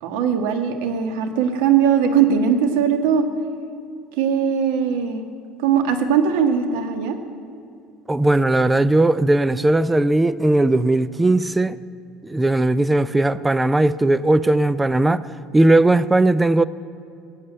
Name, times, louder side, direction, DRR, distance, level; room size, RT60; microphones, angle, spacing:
voice 1, 0.0-3.2 4.1-5.2 5.6-7.2, right 7 dB, 85° right, 1.7 m, -19 dB
voice 2, 8.1-11.8 12.2-15.2 15.5-16.6, right 2 dB, 10° right, 0.4 m, -18 dB
19.5 x 8.2 x 8.8 m
cardioid pair, 155°, 0 cm